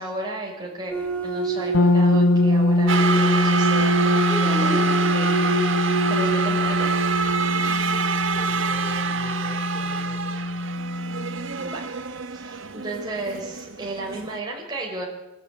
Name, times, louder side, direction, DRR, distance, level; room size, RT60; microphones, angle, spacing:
voice 1, 0.0-4.7 5.0-5.6 6.1-7.0 11.6-11.8 12.3-15.1, right 2 dB, 20° right, -2 dB, 4.8 m, -34 dB
sound 1, 0.9-8.5, right 2 dB, 10° left, 5.6 m, -28 dB
sound 2, 1.7-11.5, left 1 dB, 75° left, 1.5 m, -23 dB
sound 3, 2.9-14.4, right 5 dB, 65° right, 1.5 m, -27 dB
voice 2, 7.9-10.6, equal, 35° left, 2 dB, 5.3 m, -42 dB
25.5 x 23.0 x 9.4 m, 1.0 s
head